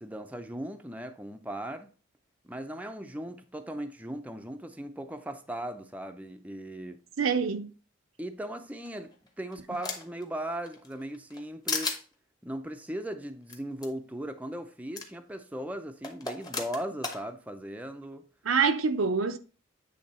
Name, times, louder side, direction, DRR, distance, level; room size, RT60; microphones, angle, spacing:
voice 1, 0.0-1.9 2.4-7.0 8.2-9.1 9.4-12.0 12.4-18.2, right 1 dB, 5° right, 0.5 m, -38 dB
voice 2, 7.2-7.7 18.4-19.4, right 5 dB, 80° right, 0.7 m, -25 dB
sound 1, 8.9-10.2 10.7-11.4 11.7-12.0 13.5-13.6 13.8-13.9 15.0-15.1 16.0-17.2, left 3 dB, 20° left, 1.0 m, -34 dB
8.6 x 3.3 x 4.2 m
head